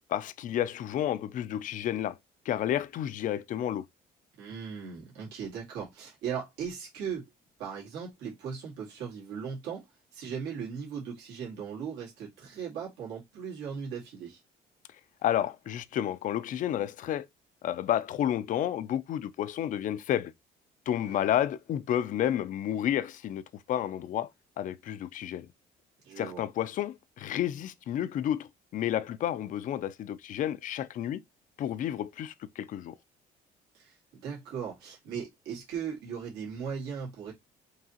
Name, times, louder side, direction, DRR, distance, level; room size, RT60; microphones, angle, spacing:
voice 1, 0.1-2.2 2.5-3.9 15.2-17.3 17.6-20.3 20.9-23.4 23.7-24.3 24.6-25.5 26.2-31.2 31.6-32.9, left 11 dB, 50° left, 0.4 m, -31 dB
voice 2, 4.4-7.3 7.6-9.8 10.1-14.4 21.0-21.3 26.0-26.4 33.7-37.3, right 7 dB, 90° right, 1.9 m, -38 dB
4.6 x 2.9 x 2.8 m
cardioid pair, 110°, 17 cm